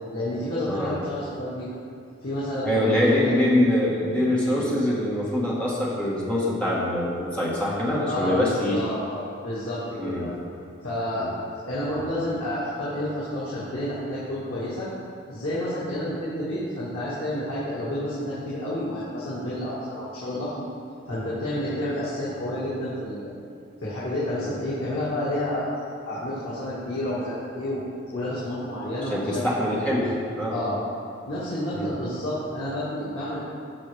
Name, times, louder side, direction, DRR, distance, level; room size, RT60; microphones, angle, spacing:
voice 1, 0.1-1.7 2.2-3.3 4.4-4.7 8.1-10.3 10.8-11.3 11.7-14.9 15.3-20.6 21.1-23.3 23.8-25.7 26.0-27.8 28.1-29.5 30.5-30.8 31.3-33.4, left 1 dB, 85° left, -9 dB, 1.9 m, -30 dB
voice 2, 2.6-8.8 10.0-10.3 11.1-11.3 29.1-30.6 31.7-31.9, left 1 dB, 5° left, -7 dB, 1.5 m, -24 dB
14.0 x 5.2 x 3.4 m, 2.5 s
head